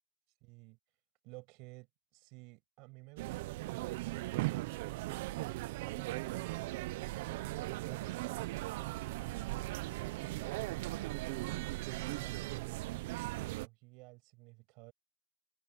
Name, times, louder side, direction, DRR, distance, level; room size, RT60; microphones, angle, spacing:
voice 1, 0.4-0.8 1.2-5.1 5.5-7.1 7.6-8.5 8.8-11.2 11.8-12.8 13.2-14.9, right 27 dB, 60° right, 6.9 m, -53 dB
sound 1, 3.2-13.7, right 19 dB, 85° right, 0.7 m, -38 dB
supercardioid pair, 150°, 0 cm